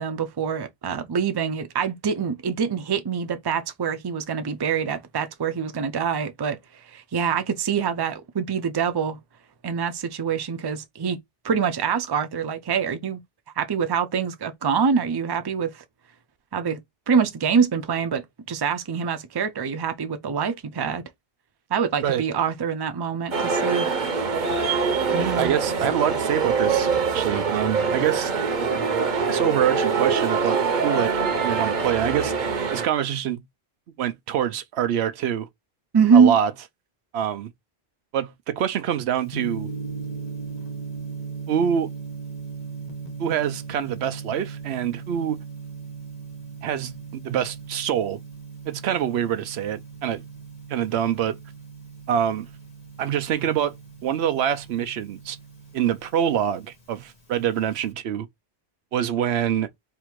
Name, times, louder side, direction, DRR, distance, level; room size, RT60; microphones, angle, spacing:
voice 1, 0.0-6.6 6.9-9.2 9.6-11.2 11.4-13.2 13.6-15.8 16.5-16.8 17.1-21.0 21.7-23.9 25.1-25.6 35.9-36.4, right 6 dB, 30° right, 0.5 m, -24 dB
sound 1, 23.3-32.9, right 5 dB, 50° right, 0.9 m, -24 dB
voice 2, 25.4-26.9 27.1-28.3 29.3-33.4 34.0-35.5 36.1-36.5 37.1-37.5 38.1-39.7 41.5-41.9 43.2-45.4 46.6-48.2 48.7-50.2 50.7-51.4 52.1-52.5 53.0-53.8 54.0-55.4 55.7-58.3 58.9-59.7, right 9 dB, 85° right, 0.9 m, -25 dB
Gong, 39.3-57.9, right 5 dB, 40° left, 1.2 m, -38 dB
3.6 x 2.5 x 4.5 m
omnidirectional pair, 1.1 m